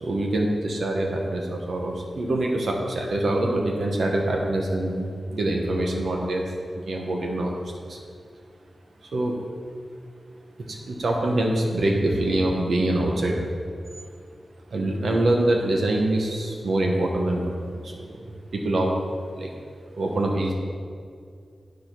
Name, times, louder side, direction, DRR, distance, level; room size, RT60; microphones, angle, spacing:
voice 1, 0.0-7.6 7.9-8.0 9.1-9.3 10.7-13.5 14.7-17.4 17.8-18.2 18.5-18.9 19.3-19.5 19.9-20.5, right 1 dB, 70° right, 0 dB, 1.2 m, -25 dB
9.7 x 5.1 x 6.1 m, 2.2 s
wide cardioid pair, 120°, 0 cm